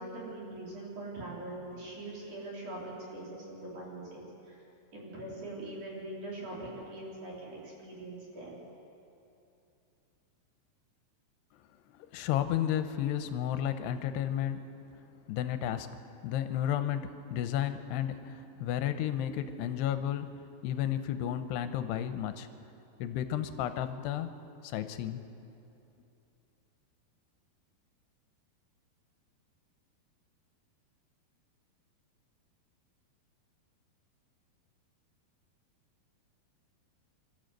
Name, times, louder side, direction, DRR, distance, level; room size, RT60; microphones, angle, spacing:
voice 1, 0.0-4.6 4.9-8.5, right 2 dB, 45° right, -5 dB, 5.3 m, -42 dB
voice 2, 11.9-14.7 15.3-22.5 23.0-24.3 24.6-25.2, left 10 dB, 85° left, 9 dB, 2.8 m, -33 dB
25.5 x 13.0 x 7.9 m, 2.8 s
omnidirectional pair, 4.8 m